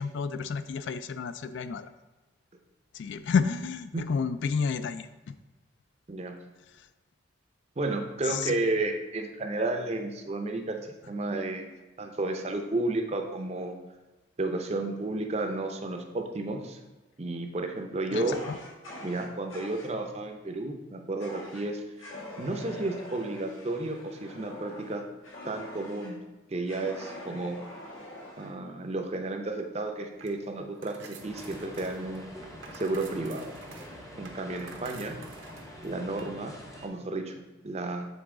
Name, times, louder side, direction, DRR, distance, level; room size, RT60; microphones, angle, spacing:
voice 1, 0.0-1.9 2.9-5.3 8.3-8.5 18.1-18.6, left 5 dB, 65° left, 12 dB, 0.3 m, -30 dB
voice 2, 7.8-10.8 11.1-11.7 12.0-13.7 14.4-16.8 17.2-18.4 19.0-21.8 22.4-25.0 25.4-26.2 26.5-27.6 28.4-32.3 32.7-33.5 34.2-35.2 35.8-36.5 36.8-38.1, right 2 dB, 30° right, 5 dB, 0.5 m, -32 dB
Fire, 18.3-19.9 21.2-21.6 22.0-26.1 26.7-28.5, left 1 dB, 85° left, 1.7 m, -44 dB
sound 1, 30.1-36.2, right 4 dB, 75° right, 0.8 m, -50 dB
sound 2, 31.2-36.9, equal, 15° left, 0.7 m, -45 dB
7.1 x 3.9 x 3.7 m, 1.1 s
head